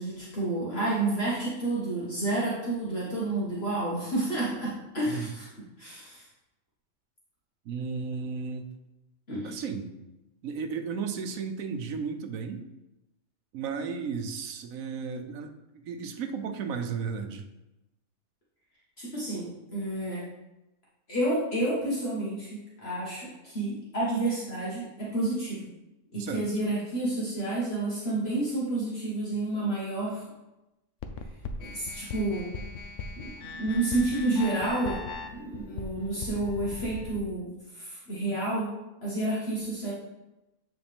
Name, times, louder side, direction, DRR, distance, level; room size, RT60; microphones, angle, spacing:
voice 1, 0.0-5.5 5.8-6.2 9.3-9.6 19.0-20.2 21.1-25.7 26.1-30.2 31.6-32.5 33.2-35.0 35.3-38.7 39.0-39.9, right 2 dB, 50° left, -7 dB, 1.7 m, -30 dB
voice 2, 7.7-8.6 9.4-9.9 10.4-12.6 13.5-17.5 26.1-26.4, right 5 dB, 85° right, 7 dB, 1.2 m, -34 dB
sound 1, 31.0-37.2, left 4 dB, 70° left, 1.0 m, -39 dB
9.4 x 4.1 x 3.5 m, 0.98 s
omnidirectional pair, 1.4 m